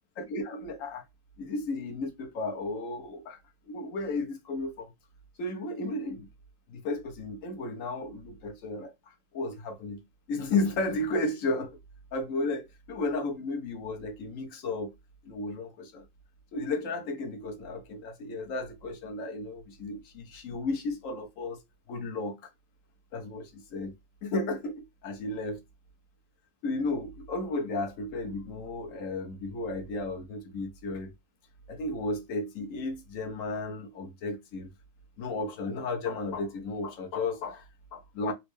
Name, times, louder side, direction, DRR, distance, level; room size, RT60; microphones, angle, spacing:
voice 1, 0.2-1.0 1.4-3.4 3.7-4.9 5.4-6.3 6.7-10.0 10.3-11.8 12.1-14.9 15.2-16.0 16.5-21.6 21.9-22.4 23.1-23.9 24.2-25.6 26.6-31.1 31.7-34.7 35.2-38.3, left 2 dB, 65° left, 0.8 m, -33 dB
4.3 x 2.0 x 3.0 m
omnidirectional pair, 2.3 m